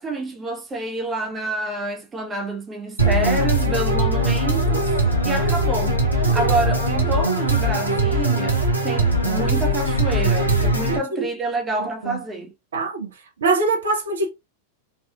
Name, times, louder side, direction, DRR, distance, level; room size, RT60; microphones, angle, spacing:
voice 1, 0.0-4.9 5.2-12.5, right 2 dB, 15° right, 0.7 m, -28 dB
sound 1, 3.0-11.0, right 1 dB, 90° right, 0.9 m, -20 dB
voice 2, 10.9-11.3 12.0-12.2 12.7-13.1 13.4-14.3, right 3 dB, 65° right, 1.1 m, -23 dB
4.0 x 2.9 x 2.3 m
figure-of-eight pair, 90°, 0 cm